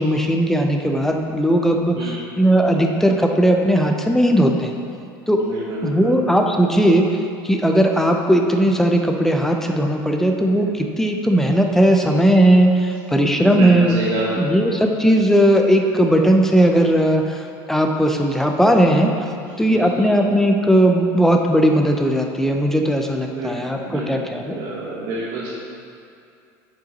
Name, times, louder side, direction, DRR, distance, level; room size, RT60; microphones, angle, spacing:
voice 1, 0.0-2.0 2.4-4.7 5.3-5.4 5.8-7.2 7.4-14.0 14.4-19.1 19.6-24.6, right 1 dB, 5° left, 2 dB, 0.6 m, -17 dB
voice 2, 5.4-6.1 13.5-14.5 19.4-19.5 19.7-20.1 23.3-25.5, right 2 dB, 65° right, -7 dB, 1.1 m, -28 dB
7.9 x 5.3 x 3.0 m, 2.5 s
supercardioid pair, 100°, 9 cm